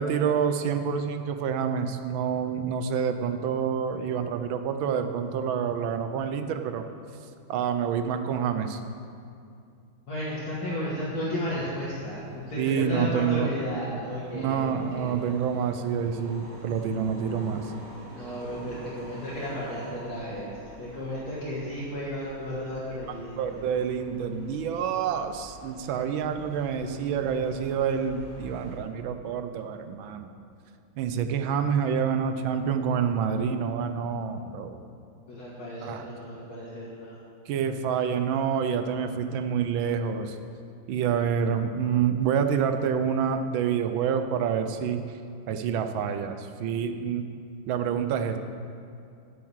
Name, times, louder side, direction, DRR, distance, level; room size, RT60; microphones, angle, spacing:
voice 1, 0.0-6.8 7.5-8.8 12.6-13.5 14.3-17.7 23.4-30.3 31.0-34.8 35.8-36.1 37.5-40.4 40.9-45.2 45.5-47.2 47.7-48.4, right 7 dB, 75° right, 8 dB, 1.4 m, -27 dB
voice 2, 10.1-12.2 12.5-15.1 18.1-20.5 20.8-23.6 35.3-37.2, left 1 dB, 50° left, -7 dB, 2.1 m, -33 dB
sound 1, 11.7-28.8, right 1 dB, 45° right, 2.1 m, -48 dB
7.7 x 7.3 x 8.1 m, 2.5 s
omnidirectional pair, 2.2 m